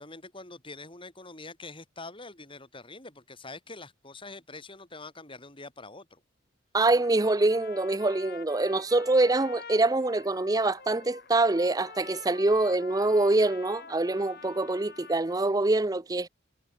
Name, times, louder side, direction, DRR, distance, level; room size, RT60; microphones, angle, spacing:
voice 1, 0.0-6.2, left 3 dB, 25° left, 6.7 m, -45 dB
voice 2, 6.7-16.3, right 2 dB, 20° right, 0.6 m, -25 dB
Trumpet, 7.0-15.4, left 5 dB, 50° left, 6.1 m, -47 dB
head